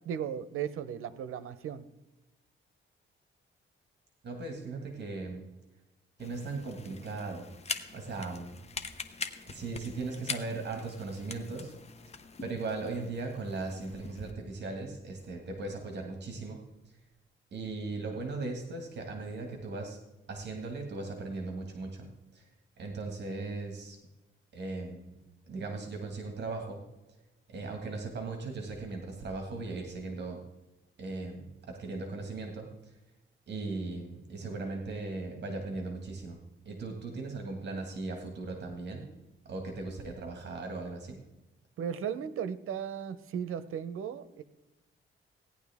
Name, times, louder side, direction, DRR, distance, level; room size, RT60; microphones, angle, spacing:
voice 1, 0.0-1.8 41.8-44.4, right 8 dB, 80° right, 14 dB, 0.8 m, -36 dB
voice 2, 4.2-5.4 6.2-7.5 7.9-8.6 9.5-11.7 12.4-16.6 17.5-20.0 20.3-22.1 22.3-22.5 22.8-24.0 24.5-25.2 25.5-26.8 27.5-30.4 31.0-32.9 33.5-36.4 36.7-39.1 39.5-41.2, right 3 dB, 55° right, 3 dB, 1.8 m, -38 dB
sound 1, 6.2-14.3, left 5 dB, 30° left, 0.8 m, -43 dB
17.0 x 10.5 x 3.5 m, 1.0 s
wide cardioid pair, 155°, 21 cm